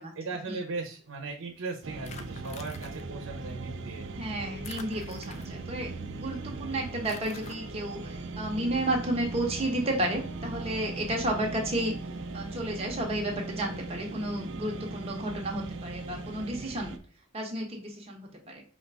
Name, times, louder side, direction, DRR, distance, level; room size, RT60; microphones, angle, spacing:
voice 1, 0.1-4.1, right 3 dB, 90° right, 2 dB, 0.8 m, -38 dB
sound 1, 1.8-17.0, right 3 dB, 60° right, 0.5 m, -39 dB
sound 2, 2.0-3.0 4.6-5.8 7.0-7.6, left 5 dB, 35° left, 0.4 m, -47 dB
voice 2, 4.1-12.0 12.3-16.9 17.3-18.6, right 1 dB, 30° right, 0 dB, 1.0 m, -32 dB
5.3 x 2.5 x 3.4 m, 0.42 s
head